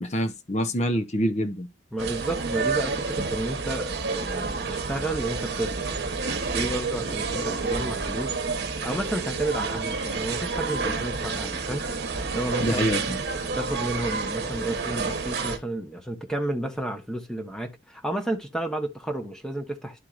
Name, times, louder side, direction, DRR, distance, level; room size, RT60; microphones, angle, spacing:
voice 1, 0.0-1.7 12.6-13.2, equal, 35° left, 0.8 m, -26 dB
voice 2, 1.9-5.9 6.5-8.4 8.8-11.9 12.3-13.1 13.5-20.0, right 1 dB, 5° left, 1.0 m, -31 dB
sound 1, 2.0-15.6, right 4 dB, 55° right, 1.2 m, -29 dB
11.5 x 4.5 x 2.5 m
head